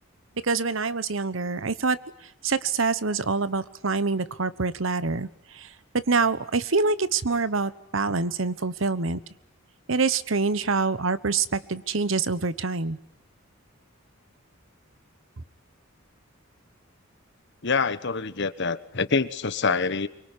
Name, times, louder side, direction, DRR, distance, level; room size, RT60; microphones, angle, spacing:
voice 1, 0.4-2.0 2.4-9.2 9.9-13.0, right 4 dB, 70° right, 15 dB, 1.1 m, -26 dB
voice 2, 17.6-20.1, left 4 dB, 60° left, 14 dB, 1.4 m, -26 dB
25.0 x 23.5 x 9.9 m, 0.75 s
head